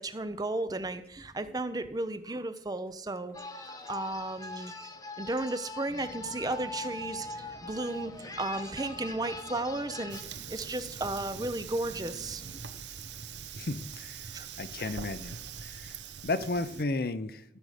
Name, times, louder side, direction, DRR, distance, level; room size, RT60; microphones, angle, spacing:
voice 1, 0.0-4.9 5.2-10.2 10.5-12.4 14.3-14.5 14.8-14.9, right 2 dB, 20° right, 11 dB, 0.6 m, -34 dB
sound 1, 3.3-10.2, left 2 dB, 20° left, 1.0 m, -42 dB
sound 2, 5.9-12.6, equal, 80° left, 2.2 m, -52 dB
Fire, 10.1-16.8, right 7 dB, 85° right, 0.8 m, -43 dB
voice 2, 13.6-14.3 14.6-15.3 15.6-16.0 16.2-17.4, left 2 dB, 55° left, 13 dB, 0.6 m, -33 dB
14.0 x 6.7 x 5.0 m, 0.74 s
head